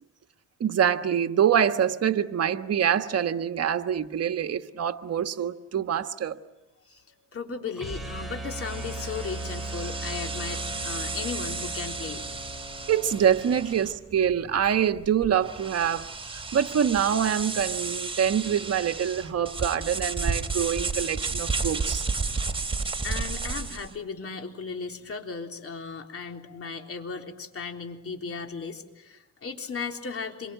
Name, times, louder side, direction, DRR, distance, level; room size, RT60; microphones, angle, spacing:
voice 1, 0.6-6.4 12.9-22.1, right 8 dB, 55° right, 8 dB, 1.5 m, -25 dB
voice 2, 6.8-12.6 23.0-30.5, left 5 dB, 50° left, 4 dB, 3.6 m, -36 dB
sound 1, 7.7-13.8, right 1 dB, ahead, 5.7 m, -38 dB
sound 2, 8.6-23.9, right 4 dB, 20° right, 3.3 m, -33 dB
27.5 x 23.5 x 9.2 m, 0.97 s
cardioid pair, 90°, 30 cm